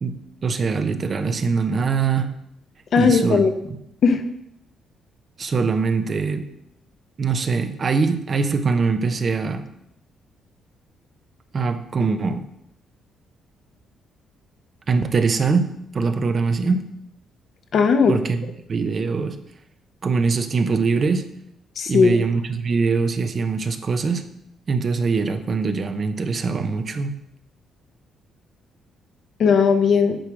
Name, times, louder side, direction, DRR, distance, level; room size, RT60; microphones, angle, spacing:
voice 1, 0.0-2.4 3.0-3.8 5.4-6.4 7.2-9.7 11.5-12.5 14.9-16.9 18.1-19.4 20.0-21.3 21.9-24.3 24.7-27.2, right 4 dB, 45° right, 8 dB, 0.7 m, -23 dB
voice 2, 2.9-3.5 4.0-4.2 17.7-18.1 21.8-22.2 29.4-30.2, left 5 dB, 60° left, 6 dB, 0.9 m, -17 dB
8.9 x 3.2 x 6.2 m, 0.77 s
cardioid pair, 90°, 0 cm